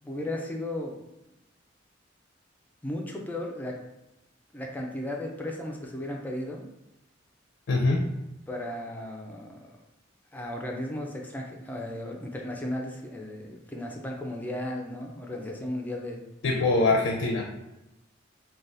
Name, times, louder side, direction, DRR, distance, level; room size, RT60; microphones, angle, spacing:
voice 1, 0.0-1.0 2.8-3.8 4.5-6.6 8.5-9.8 10.3-16.2, left 1 dB, 10° left, 0 dB, 0.4 m, -35 dB
voice 2, 7.7-8.1 16.4-17.5, left 2 dB, 80° left, 1 dB, 0.4 m, -23 dB
3.3 x 2.3 x 2.6 m, 0.93 s
head